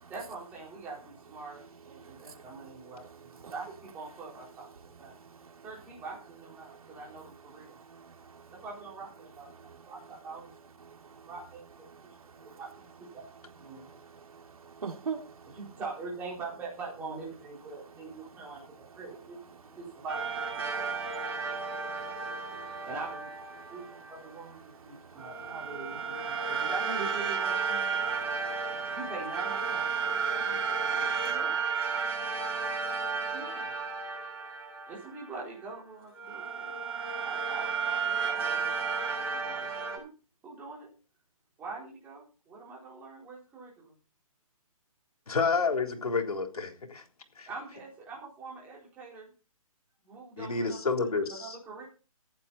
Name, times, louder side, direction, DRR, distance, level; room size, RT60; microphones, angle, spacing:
voice 1, 0.1-4.7 5.0-5.2 5.6-7.8 8.5-10.5 11.3-11.6 12.2-12.7 13.1-13.2 13.6-13.9 15.5-21.0 22.8-23.3 23.7-28.0 28.9-31.6 33.3-33.8 34.9-36.7 37.1-40.1 40.4-40.9 41.6-43.9 45.3-45.5 47.5-49.3 50.0-50.8 51.3-51.8, right 3 dB, 10° right, -3 dB, 4.2 m, -44 dB
voice 2, 7.9-8.4 9.7-9.8 10.9-11.2 12.4-12.6 13.8-13.9 14.3-15.5 20.8-21.0 21.8-21.9 22.3-22.7 25.2-25.3 31.0-31.1, right 6 dB, 70° right, 5 dB, 2.7 m, -42 dB
sound 1, 20.1-24.3 25.2-35.6 36.1-40.0, right 5 dB, 40° right, 7.4 m, -33 dB
voice 3, 45.3-47.0 47.4-47.5 50.4-51.6, left 4 dB, 90° left, 4 dB, 3.7 m, -29 dB
15.0 x 9.9 x 4.2 m, 0.34 s
hypercardioid pair, 175°, 19 cm